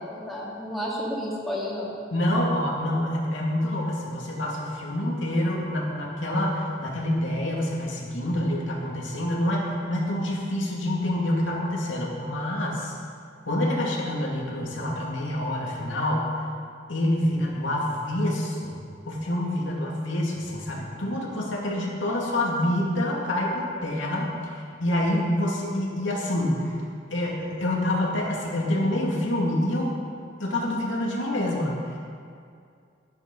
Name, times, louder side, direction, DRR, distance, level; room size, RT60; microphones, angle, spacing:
voice 1, 0.0-1.9, equal, ahead, -7 dB, 2.4 m, -31 dB
voice 2, 2.1-13.0 13.5-16.2 16.9-18.8 19.1-26.7 27.1-29.9 30.4-32.0, left 1 dB, 80° left, -3 dB, 2.4 m, -27 dB
11.0 x 10.5 x 5.4 m, 2.3 s
head